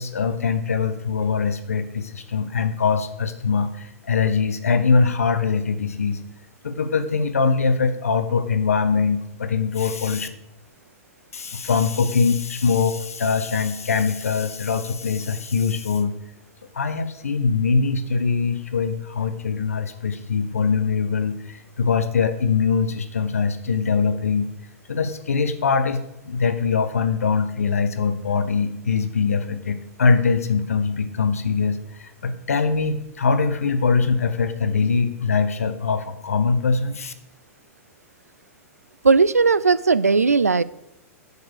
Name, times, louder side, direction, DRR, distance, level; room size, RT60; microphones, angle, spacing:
voice 1, 0.0-6.2 6.6-10.3 11.3-16.1 16.7-24.5 24.9-37.1, left 5 dB, 70° left, 10 dB, 0.8 m, -22 dB
voice 2, 39.0-40.6, right 4 dB, 80° right, 18 dB, 0.4 m, -17 dB
9.3 x 4.7 x 6.4 m, 0.86 s
figure-of-eight pair, 100°, 8 cm